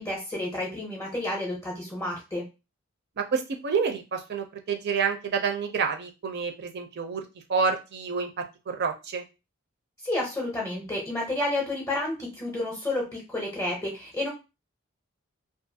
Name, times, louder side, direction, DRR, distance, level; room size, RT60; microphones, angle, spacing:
voice 1, 0.0-2.5 10.0-14.3, left 1 dB, 15° left, -3 dB, 0.6 m, -30 dB
voice 2, 3.2-7.2 7.5-8.3 8.7-9.2, right 5 dB, 50° right, 5 dB, 0.4 m, -28 dB
2.4 x 2.3 x 2.6 m, 0.27 s
head